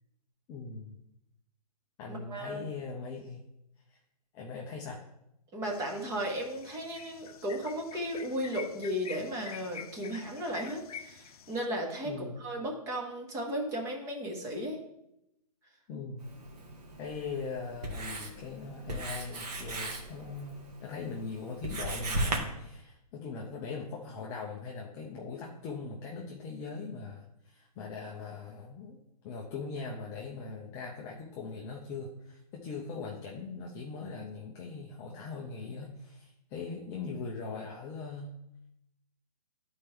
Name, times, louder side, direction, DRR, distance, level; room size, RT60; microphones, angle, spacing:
voice 1, 0.5-0.9 2.0-3.4 3.9-4.0 4.3-5.0 12.0-12.4 15.9-16.3 17.0-29.0 29.2-38.4, left 4 dB, 15° left, -1 dB, 0.4 m, -40 dB
voice 2, 2.1-2.7 5.5-12.1 12.4-14.8, equal, 15° right, 0 dB, 1.3 m, -35 dB
sound 1, 5.6-11.7, left 7 dB, 65° left, 0.6 m, -47 dB
Writing, 16.2-22.4, right 2 dB, 75° right, 1.9 m, -38 dB
11.5 x 4.3 x 3.4 m, 0.84 s
hypercardioid pair, 160°, 20 cm